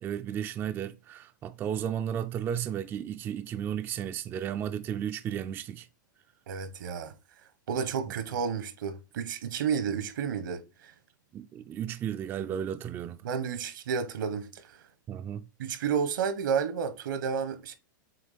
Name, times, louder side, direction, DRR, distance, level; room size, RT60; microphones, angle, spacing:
voice 1, 0.0-5.9 11.3-13.2 15.1-15.5, right 9 dB, 20° right, 0.3 m, -34 dB
voice 2, 6.5-7.1 7.7-10.9 13.2-14.6 15.6-17.8, right 6 dB, 75° right, 1.1 m, -31 dB
7.6 x 3.0 x 4.1 m
hypercardioid pair, 140°, 11 cm